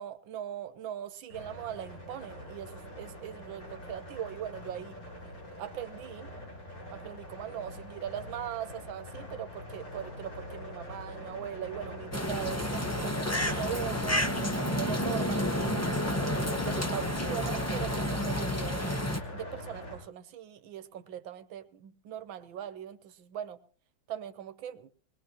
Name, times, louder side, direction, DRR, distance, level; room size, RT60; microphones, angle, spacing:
voice 1, 0.0-5.0 5.6-6.3 6.9-15.5 16.1-23.6 24.1-24.9, right 10 dB, 90° right, 1.6 m, -40 dB
sound 1, 1.3-20.0, left 1 dB, 85° left, 8.7 m, -43 dB
sound 2, 12.1-19.2, left 1 dB, 15° left, 0.6 m, -30 dB
21.0 x 20.0 x 2.9 m
omnidirectional pair, 2.0 m